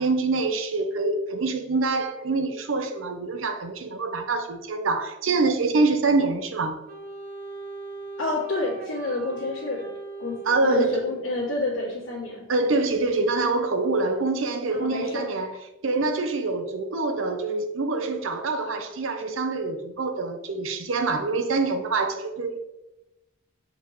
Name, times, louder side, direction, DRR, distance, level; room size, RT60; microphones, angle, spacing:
voice 1, 0.0-6.8 10.5-11.0 12.5-15.6 15.8-22.6, right 3 dB, 80° right, 0.7 m, -25 dB
Wind instrument woodwind instrument, 6.9-11.5, right 2 dB, 50° right, 0.9 m, -40 dB
voice 2, 8.2-9.9 10.2-12.4 14.7-15.3, left 2 dB, 80° left, 2.3 m, -29 dB
7.2 x 5.2 x 3.0 m
head